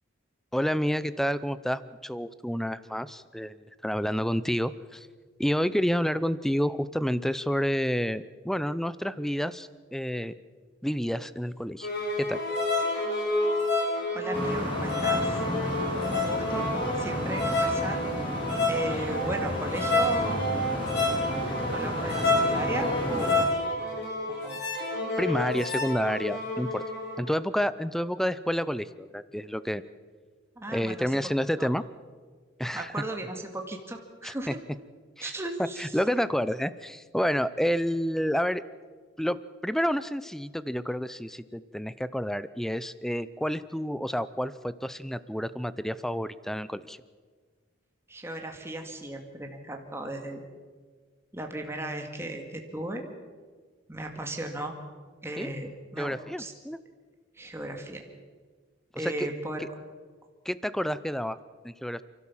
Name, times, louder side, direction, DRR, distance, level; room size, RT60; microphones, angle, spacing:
voice 1, 0.5-5.1 5.4-10.3 10.8-11.9 12.2-12.4 25.2-26.8 27.2-29.8 30.7-31.8 32.6-32.9 34.2-34.5 35.2-35.3 35.6-38.6 39.2-47.0 55.4-55.5 56.0-56.8 58.9-59.3 59.6-59.7 60.4-61.4 61.6-62.0, equal, ahead, 16 dB, 0.5 m, -29 dB
sound 1, 11.8-27.2, left 2 dB, 55° left, 5.1 m, -29 dB
voice 2, 14.1-15.4 16.1-16.7 17.0-18.1 18.7-20.4 21.7-23.5 24.3-24.6 25.3-25.6 30.6-31.2 31.6-31.7 32.7-34.6 35.2-35.9 48.1-50.5 51.3-53.0 53.9-54.8 55.2-56.5 57.4-58.0 58.9-59.6, right 1 dB, 15° right, 3 dB, 2.1 m, -36 dB
sound 2, 14.3-23.4, equal, 25° left, 4.2 m, -32 dB
28.5 x 12.5 x 7.3 m, 1.5 s
head